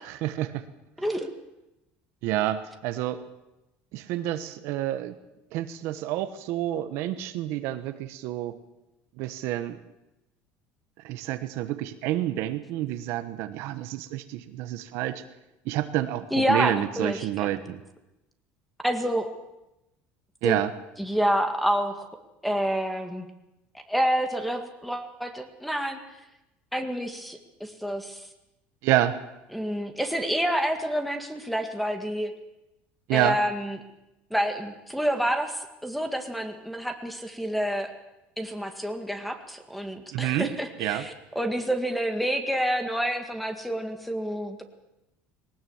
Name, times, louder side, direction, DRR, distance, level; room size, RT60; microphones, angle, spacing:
voice 1, 0.2-0.6 2.2-3.2 3.9-5.1 5.5-8.6 9.2-9.8 11.0-15.2 15.6-17.8 20.4-20.7 28.8-29.2 33.1-33.4 40.1-40.5 40.8-41.1, right 14 dB, 70° right, 10 dB, 1.2 m, -28 dB
voice 2, 1.0-1.3 16.3-17.6 18.8-19.3 20.4-20.6 21.0-22.1 22.4-23.3 23.9-26.0 26.7-28.2 29.5-32.3 33.1-33.8 34.3-37.9 38.4-44.6, equal, ahead, 6 dB, 1.9 m, -28 dB
20.0 x 19.0 x 7.3 m, 0.94 s
cardioid pair, 140°, 5 cm